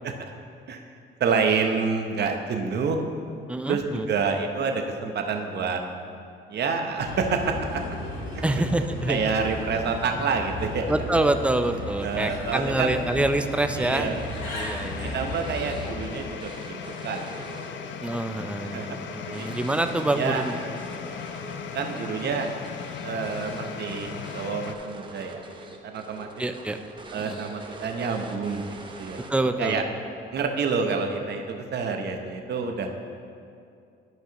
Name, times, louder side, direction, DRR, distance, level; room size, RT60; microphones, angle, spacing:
voice 1, 1.2-3.0 3.6-5.8 6.5-7.5 9.1-10.9 12.0-13.0 13.8-14.3 15.1-17.6 18.2-18.9 19.4-19.5 20.1-20.4 21.7-22.5 23.0-25.4 25.8-26.3 27.1-28.7 29.0-29.3 29.6-29.8 30.3-32.9, right 5 dB, 55° right, 4 dB, 0.8 m, -28 dB
voice 2, 3.5-4.1 8.4-9.2 10.9-14.1 14.5-15.2 18.0-20.8 26.4-26.8 27.2-27.4 29.3-29.8, right 2 dB, 5° right, 8 dB, 0.4 m, -26 dB
Bird, 7.0-16.0, left 1 dB, 85° left, 1.9 m, -35 dB
sound 1, 10.3-24.7, left 8 dB, 70° left, 0.5 m, -39 dB
sound 2, 13.7-29.6, right 2 dB, 25° right, 0.8 m, -44 dB
12.5 x 5.4 x 3.0 m, 2.5 s
cardioid pair, 90°, 20 cm